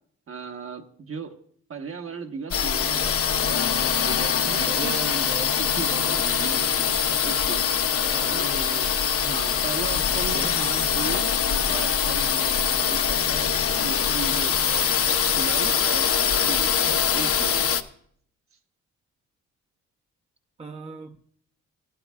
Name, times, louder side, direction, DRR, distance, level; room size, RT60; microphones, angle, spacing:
voice 1, 0.3-1.3 1.7-3.6 4.1-5.0 5.6-7.6 8.3-8.9 9.2-13.6 13.8-17.7, right 5 dB, 45° right, 1.2 m, -37 dB
sound 1, 2.5-17.8, left 7 dB, 50° left, 0.8 m, -23 dB
voice 2, 4.7-6.2 7.9-8.6 10.3-10.6 20.6-21.2, right 3 dB, 20° right, 0.8 m, -37 dB
17.5 x 12.5 x 2.3 m
cardioid pair, 85°, 30 cm